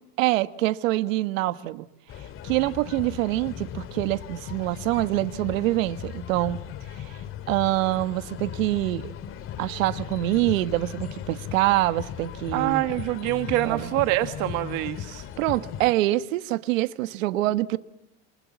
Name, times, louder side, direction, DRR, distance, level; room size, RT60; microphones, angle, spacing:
voice 1, 0.2-1.9 2.2-6.6 6.9-7.2 7.5-9.1 9.6-12.8 13.6-13.9 15.4-17.8, right 17 dB, 85° right, 1.5 m, -25 dB
sound 1, 2.1-15.9, left 9 dB, 35° left, 2.1 m, -37 dB
voice 2, 12.5-15.2, right 17 dB, 50° right, 1.9 m, -25 dB
28.0 x 27.5 x 7.2 m
supercardioid pair, 155°, 39 cm